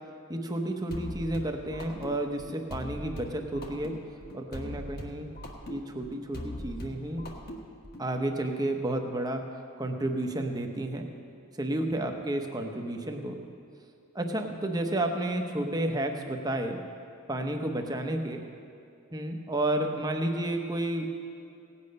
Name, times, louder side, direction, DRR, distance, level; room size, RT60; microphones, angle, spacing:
voice 1, 0.3-3.9 4.3-5.3 5.7-7.3 8.0-9.4 9.8-11.1 11.6-13.4 14.1-16.8 17.3-18.4 19.1-21.1, right 1 dB, 20° right, 4 dB, 0.9 m, -31 dB
sound 1, 0.9-8.1, left 1 dB, 45° left, 1.3 m, -41 dB
17.5 x 8.7 x 5.4 m, 2.4 s
head